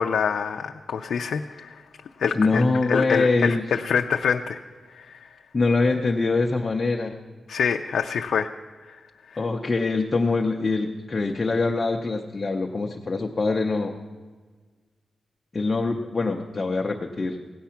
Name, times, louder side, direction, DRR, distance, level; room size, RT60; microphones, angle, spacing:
voice 1, 0.0-1.8 2.2-4.6 4.9-5.3 7.5-8.5 8.8-9.0 9.3-9.4, left 6 dB, 75° left, 4 dB, 0.5 m, -26 dB
voice 2, 2.3-3.6 5.5-7.2 9.4-14.0 15.5-17.4, left 3 dB, 25° left, 2 dB, 0.6 m, -24 dB
17.0 x 9.3 x 5.8 m, 1.5 s
wide cardioid pair, 175°, 0 cm